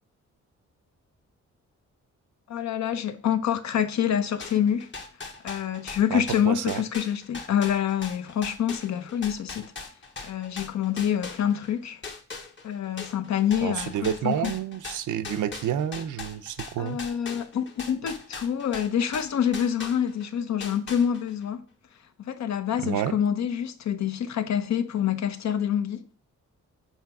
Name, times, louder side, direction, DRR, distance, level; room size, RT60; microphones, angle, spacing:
voice 1, 2.5-4.9 5.4-9.7 10.2-12.0 12.6-14.5 16.8-21.6 22.3-26.0, left 9 dB, 65° left, 0.8 m, -26 dB
sound 1, 4.4-11.7 12.0-20.3 20.6-21.4, left 4 dB, 40° left, 1.1 m, -40 dB
voice 2, 6.1-6.8 13.6-17.0 22.8-23.2, right 10 dB, 85° right, 0.6 m, -29 dB
7.3 x 3.3 x 5.9 m
wide cardioid pair, 140°, 30 cm